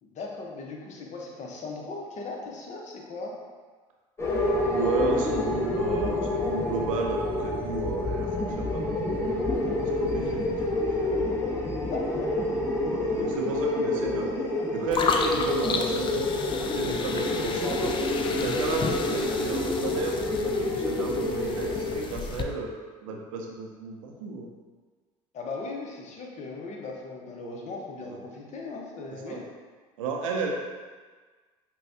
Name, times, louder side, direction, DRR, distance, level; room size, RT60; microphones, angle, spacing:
voice 1, 0.0-3.3 11.8-12.3 25.3-29.4, left 3 dB, 45° left, -1 dB, 0.9 m, -38 dB
sound 1, 4.2-22.0, left 2 dB, 15° left, 1.0 m, -28 dB
voice 2, 4.6-8.3 8.6-9.2 9.9-10.4 10.7-10.8 12.8-14.3 14.7-16.2 16.7-18.0 18.3-22.7 23.0-24.5 28.1-28.2 29.3-29.4 30.0-30.5, right 3 dB, 90° right, 1 dB, 0.5 m, -32 dB
sound 2, 14.9-22.4, left 5 dB, 30° left, 0.4 m, -33 dB
5.4 x 2.3 x 2.6 m, 1.4 s
hypercardioid pair, 75°, 16 cm